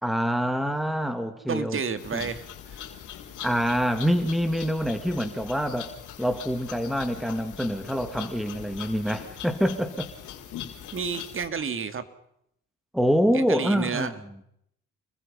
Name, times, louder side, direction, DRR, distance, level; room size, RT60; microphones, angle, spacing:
voice 1, 0.0-1.8 2.1-2.2 3.4-5.9 6.2-10.1 12.9-14.1, equal, ahead, 8 dB, 2.7 m, -26 dB
voice 2, 1.5-2.4 2.7-2.8 10.9-12.0 13.3-14.1, right 5 dB, 45° right, 11 dB, 2.7 m, -30 dB
sound 1, 2.0-11.5, left 9 dB, 80° left, 4.1 m, -41 dB
30.0 x 22.0 x 5.8 m, 0.73 s
cardioid pair, 90°, 30 cm